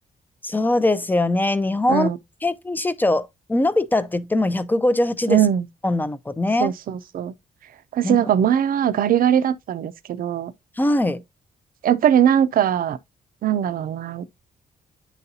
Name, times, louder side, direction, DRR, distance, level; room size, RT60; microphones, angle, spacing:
voice 1, 0.4-2.1 2.4-5.4 5.8-6.7 8.0-8.3 10.8-11.2, left 2 dB, 10° left, 0.5 m, -21 dB
voice 2, 5.3-5.7 6.6-7.3 7.9-10.5 11.8-13.0 13.4-14.2, right 9 dB, 60° right, 0.6 m, -20 dB
9.5 x 4.1 x 2.7 m
cardioid pair, 125°, 16 cm